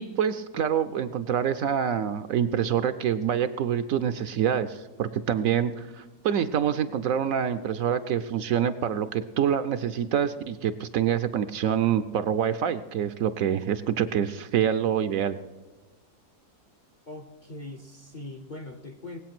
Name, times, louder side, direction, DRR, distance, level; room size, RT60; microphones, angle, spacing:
voice 1, 0.0-15.4, right 9 dB, 65° right, 11 dB, 0.9 m, -26 dB
voice 2, 17.1-19.2, left 2 dB, 40° left, 6 dB, 0.7 m, -41 dB
19.5 x 8.4 x 6.0 m, 1.2 s
omnidirectional pair, 1.7 m